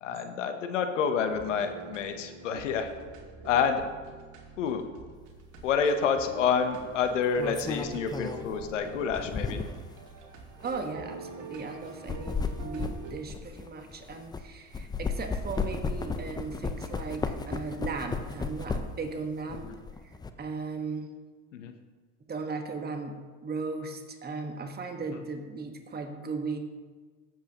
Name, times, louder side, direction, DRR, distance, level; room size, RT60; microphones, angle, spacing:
voice 1, 0.0-2.9 3.4-3.8 4.6-4.8 5.6-9.6 21.5-21.7, left 6 dB, 90° left, 7 dB, 1.0 m, -28 dB
sound 1, 1.2-13.1, right 3 dB, 55° right, 2.1 m, -45 dB
sound 2, 5.6-5.8 7.0-9.9 10.6-10.8 11.8-14.4 14.7-19.1 19.5-20.3, left 4 dB, 10° left, 0.5 m, -34 dB
voice 2, 10.6-19.7 20.0-21.1 22.3-26.6, right 4 dB, 25° right, 4 dB, 1.4 m, -37 dB
14.5 x 7.6 x 3.0 m, 1.4 s
hypercardioid pair, 90°, 36 cm